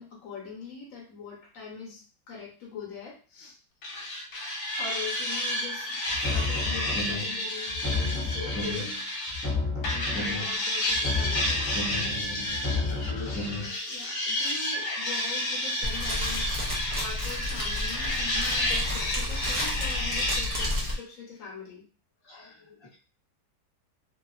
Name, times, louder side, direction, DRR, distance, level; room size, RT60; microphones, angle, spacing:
voice 1, 0.0-3.6 4.8-9.0 9.3-9.5 9.9-11.7 13.5-21.9, left 5 dB, 60° left, -3 dB, 0.9 m, -42 dB
sound 1, 3.8-9.5 9.8-20.7, left 1 dB, 80° left, 1.2 m, -31 dB
sound 2, 6.1-7.4 7.7-9.0 9.3-10.6 10.9-13.7, left 3 dB, 10° left, 0.7 m, -31 dB
voice 2, 12.7-13.3 22.2-23.0, left 4 dB, 40° left, -6 dB, 0.4 m, -43 dB
Fire, 15.8-20.9, left 1 dB, 75° right, 0.3 m, -31 dB
2.8 x 2.3 x 2.3 m, 0.37 s
omnidirectional pair, 1.9 m